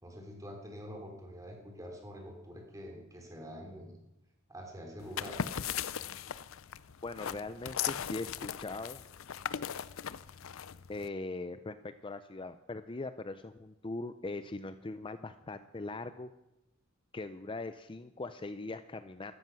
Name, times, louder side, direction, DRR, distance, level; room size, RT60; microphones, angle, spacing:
voice 1, 0.0-4.0 4.5-5.4, equal, 15° right, 2 dB, 3.7 m, -46 dB
sound 1, 5.0-11.1, left 8 dB, 80° left, 0.5 m, -38 dB
voice 2, 7.0-9.0 10.9-16.3 17.1-19.3, left 2 dB, 25° left, 11 dB, 0.5 m, -41 dB
15.0 x 13.5 x 6.2 m, 0.93 s
head